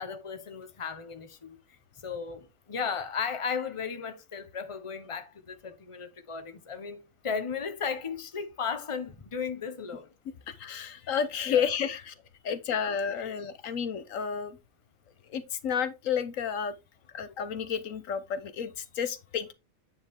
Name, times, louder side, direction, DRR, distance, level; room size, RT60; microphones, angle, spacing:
voice 1, 0.0-1.6 2.0-7.0 7.2-10.1 11.5-11.7 13.2-13.4, left 6 dB, 25° left, 1.0 m, -35 dB
voice 2, 10.5-12.1 12.4-14.6 15.3-16.7 17.1-19.5, left 7 dB, 75° left, 1.2 m, -31 dB
9.1 x 5.0 x 3.6 m
omnidirectional pair, 1.4 m